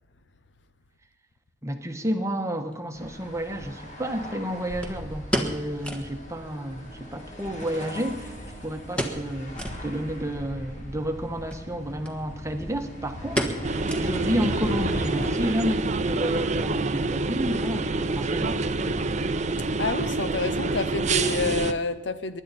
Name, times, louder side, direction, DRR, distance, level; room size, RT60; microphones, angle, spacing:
voice 1, 1.6-8.3 8.6-18.6, equal, 15° right, 1.3 m, -31 dB
sound 1, 2.7-2.8 4.8-6.2 6.5-6.6 6.9-7.0 7.6-8.5 8.9-9.3 9.5-9.8 10.3-10.4 11.4-11.7 12.0-12.2 12.5-12.8 13.4-14.4 14.7-14.8 15.4-15.7 16.0-16.1, equal, 5° left, 1.5 m, -31 dB
sound 2, 3.0-15.3, equal, 40° left, 2.6 m, -39 dB
sound 3, 13.6-21.7, right 3 dB, 40° right, 0.7 m, -27 dB
voice 2, 19.8-22.4, left 3 dB, 70° left, 0.8 m, -28 dB
24.0 x 11.0 x 4.3 m
head